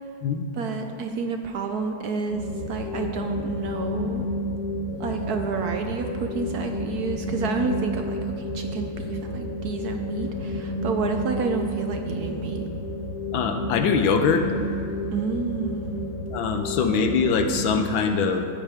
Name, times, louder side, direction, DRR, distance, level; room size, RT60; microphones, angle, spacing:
voice 1, 0.5-4.2 5.0-12.7 15.1-16.0, right 5 dB, 65° right, 4 dB, 1.0 m, -30 dB
sound 1, 2.3-17.9, left 1 dB, 45° left, 1.7 m, -31 dB
voice 2, 13.3-14.5 16.3-18.4, left 5 dB, 80° left, 6 dB, 1.6 m, -23 dB
13.5 x 9.7 x 3.5 m, 2.4 s
omnidirectional pair, 2.1 m